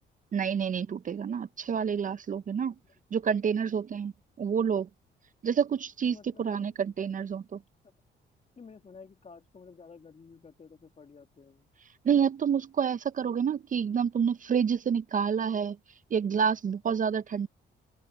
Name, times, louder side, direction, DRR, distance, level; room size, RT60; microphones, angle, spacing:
voice 1, 0.3-2.7 3.1-4.1 4.4-4.9 5.4-7.6 12.0-15.8 16.1-17.5, right 7 dB, 40° right, 0.6 m, -28 dB
voice 2, 6.0-6.8 8.6-11.7 16.3-16.5, left 5 dB, 35° left, 2.3 m, -52 dB
open air
cardioid pair, 90°, 20 cm